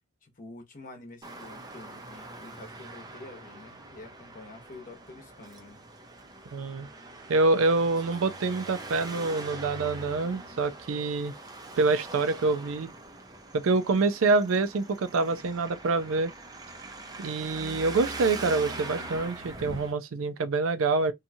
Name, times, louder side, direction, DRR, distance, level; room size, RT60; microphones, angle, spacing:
voice 1, 0.2-5.8 7.9-8.0, left 2 dB, 40° left, 0.9 m, -47 dB
Traffic noise roadway noise, 1.2-19.9, right 2 dB, 20° right, 0.5 m, -42 dB
voice 2, 6.5-6.9 7.3-11.3 11.8-12.9 13.5-16.3 17.2-21.1, right 3 dB, 75° right, 0.5 m, -26 dB
2.7 x 2.3 x 2.7 m
head